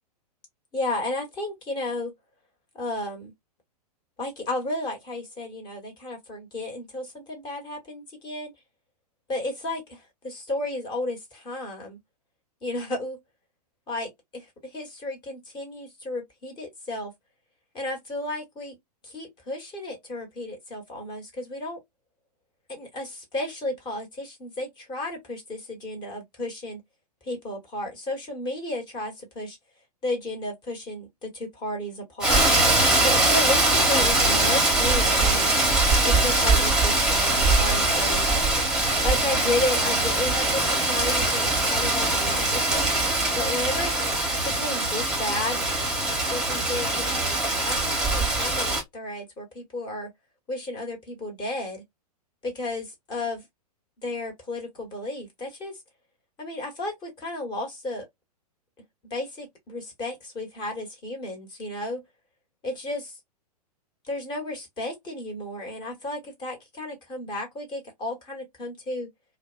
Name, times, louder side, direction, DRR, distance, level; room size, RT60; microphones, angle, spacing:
voice 1, 0.7-2.1 2.7-3.3 4.2-8.5 9.3-12.0 12.6-13.2 13.9-17.1 17.7-18.8 19.0-21.8 22.7-26.8 27.2-29.6 30.0-32.4 33.0-35.6 36.0-38.2 39.0-42.9 43.3-44.1 44.4-45.6 46.3-50.1 50.5-51.8 52.4-53.4 54.0-55.8 56.4-58.0 59.1-62.0 62.6-63.0 64.0-69.1, left 2 dB, 20° left, 1.2 m, -33 dB
Rain, 32.2-48.8, right 2 dB, 5° right, 1.0 m, -22 dB
2.5 x 2.1 x 2.4 m
figure-of-eight pair, 105°, 20 cm